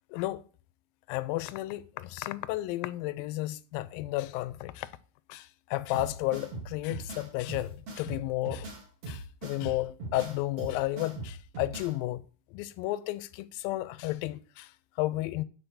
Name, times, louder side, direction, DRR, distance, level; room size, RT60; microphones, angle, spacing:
voice 1, 0.1-0.4 1.1-4.9 5.3-8.7 9.1-12.2 12.5-15.4, left 17 dB, 85° left, 2.3 m, -33 dB
sound 1, 5.9-11.9, right 2 dB, 45° right, 3.9 m, -40 dB
9.1 x 4.4 x 6.8 m
omnidirectional pair, 4.0 m